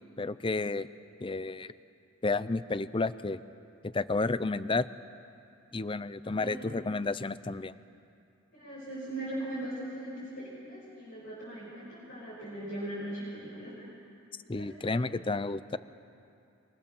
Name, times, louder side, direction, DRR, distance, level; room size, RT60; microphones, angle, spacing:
voice 1, 0.2-0.9 1.2-1.7 2.2-3.4 3.9-4.9 5.7-7.7 14.5-15.8, left 3 dB, 25° left, 15 dB, 0.5 m, -31 dB
voice 2, 8.5-13.9 14.5-15.1, right 1 dB, 55° left, -8 dB, 7.1 m, -40 dB
26.5 x 24.0 x 7.2 m, 2.6 s
head